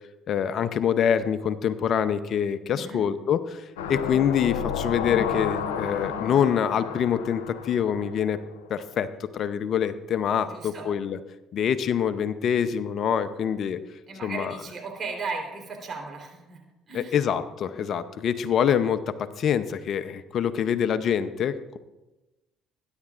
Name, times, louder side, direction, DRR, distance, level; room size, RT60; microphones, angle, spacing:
voice 1, 0.3-8.4 8.7-11.2 11.5-13.8 14.2-14.6 16.9-21.8, left 8 dB, 55° left, 12 dB, 0.7 m, -25 dB
sound 1, 3.8-8.6 9.0-9.1, left 7 dB, 85° left, 1.0 m, -32 dB
voice 2, 10.5-10.9 14.1-16.6 16.9-17.1, right 4 dB, 45° right, 2 dB, 3.8 m, -36 dB
21.0 x 10.5 x 2.5 m, 1.0 s
hypercardioid pair, 60°, 0 cm